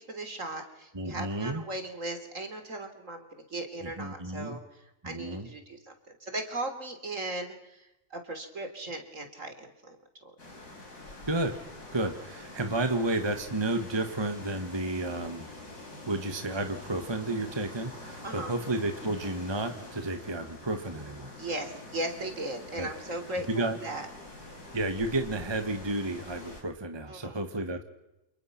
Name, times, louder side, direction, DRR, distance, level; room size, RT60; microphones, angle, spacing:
voice 1, 0.0-10.0 10.2-10.3 18.2-18.5 21.4-24.1 27.1-27.4, right 2 dB, 50° right, 6 dB, 3.6 m, -38 dB
voice 2, 0.9-1.6 3.8-4.6 5.0-5.5 11.3-11.6 11.9-15.5 16.1-21.3 22.8-22.9 23.5-23.8 24.7-27.8, right 2 dB, 15° right, 6 dB, 1.6 m, -31 dB
sound 1, 10.4-26.6, left 2 dB, 70° left, 5.7 m, -46 dB
29.0 x 28.0 x 6.0 m, 0.92 s
omnidirectional pair, 1.7 m